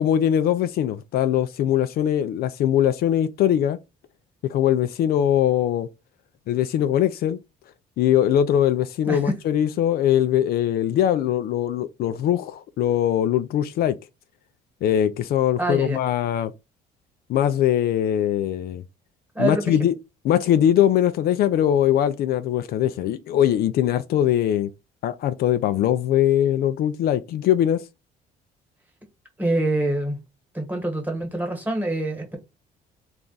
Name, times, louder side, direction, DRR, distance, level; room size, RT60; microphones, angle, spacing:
voice 1, 0.0-3.8 4.4-5.9 6.5-7.4 8.0-14.0 14.8-16.5 17.3-18.8 19.4-20.0 20.2-24.7 25.0-27.9, left 10 dB, 65° left, 0.4 m, -21 dB
voice 2, 15.6-16.0 19.3-19.9 29.4-30.2 30.5-32.4, right 1 dB, 10° right, 1.3 m, -25 dB
3.4 x 2.4 x 3.9 m
cardioid pair, 110°, 17 cm